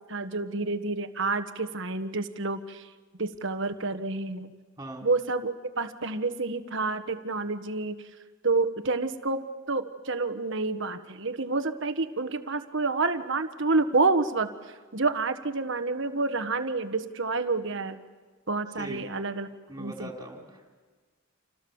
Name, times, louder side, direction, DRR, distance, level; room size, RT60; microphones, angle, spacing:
voice 1, 0.1-2.9 3.2-4.5 5.0-8.0 8.4-14.5 14.9-18.0 18.5-19.5 19.8-20.1, right 3 dB, 60° right, 8 dB, 1.4 m, -28 dB
voice 2, 4.8-5.1 18.8-19.1 19.7-20.7, right 1 dB, 15° right, 1 dB, 4.4 m, -40 dB
29.5 x 28.0 x 7.2 m, 1.4 s
head